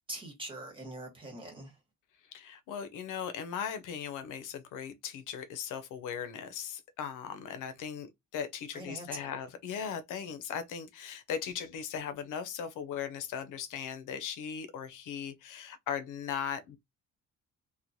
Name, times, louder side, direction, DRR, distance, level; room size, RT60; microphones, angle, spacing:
voice 1, 0.1-1.8 8.7-9.3, right 2 dB, 15° right, 1.2 m, -43 dB
voice 2, 2.3-16.8, left 8 dB, 85° left, 0.6 m, -38 dB
3.0 x 2.1 x 2.6 m
cardioid pair, 140°, 30 cm